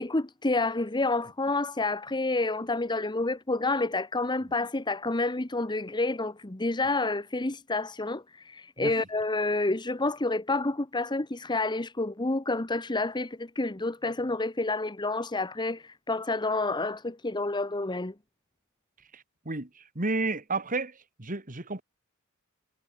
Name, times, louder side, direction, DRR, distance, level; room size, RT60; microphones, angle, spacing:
voice 1, 0.0-18.1, left 2 dB, 20° left, 1.0 m, -29 dB
voice 2, 19.1-21.8, right 3 dB, 35° right, 2.1 m, -32 dB
head